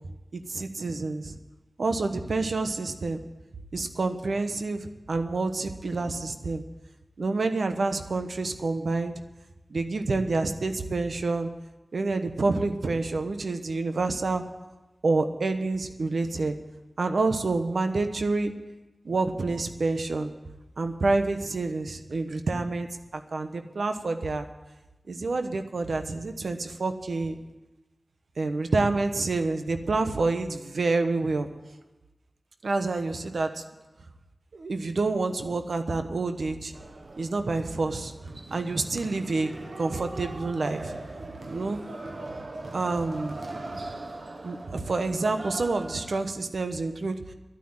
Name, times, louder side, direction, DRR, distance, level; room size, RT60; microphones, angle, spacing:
voice 1, 0.3-1.4 1.8-3.2 3.7-6.6 7.2-9.1 9.7-11.5 11.9-14.4 15.0-16.5 17.0-18.5 19.0-20.3 20.8-22.9 23.1-24.4 25.1-27.4 28.4-31.5 32.6-33.6 34.5-36.7 37.2-38.1 38.5-39.5 39.8-40.9 41.5-41.8 42.7-43.4 43.7-43.8 44.4-47.2, right 3 dB, 90° right, 7 dB, 1.1 m, -28 dB
sound 1, 36.7-46.3, right 2 dB, 70° right, 1.3 m, -40 dB
11.0 x 9.6 x 9.0 m, 1.1 s
wide cardioid pair, 65°, 0 cm